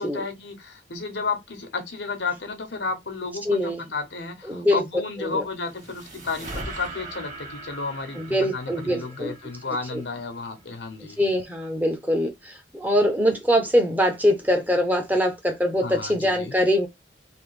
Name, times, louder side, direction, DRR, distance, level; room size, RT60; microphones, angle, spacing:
voice 1, 0.0-11.2 15.8-16.6, left 4 dB, 80° left, 1.1 m, -32 dB
voice 2, 3.5-3.8 4.5-4.8 5.2-5.4 8.1-9.3 9.9-10.0 11.2-16.9, equal, 10° right, 0.7 m, -23 dB
sound 1, 5.3-10.6, right 2 dB, 45° right, 1.6 m, -40 dB
3.5 x 2.9 x 3.2 m
head